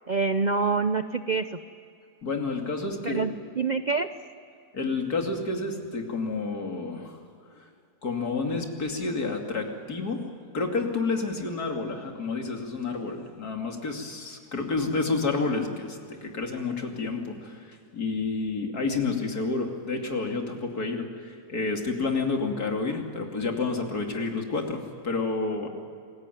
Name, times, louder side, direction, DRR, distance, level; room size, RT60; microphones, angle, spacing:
voice 1, 0.1-1.4 3.0-4.1, right 4 dB, 50° right, 10 dB, 0.5 m, -26 dB
voice 2, 2.2-3.3 4.7-7.2 7.5-7.6 8.0-10.3 10.5-25.7, left 3 dB, 65° left, 2 dB, 3.2 m, -30 dB
28.0 x 21.0 x 9.3 m, 2.4 s
omnidirectional pair, 1.8 m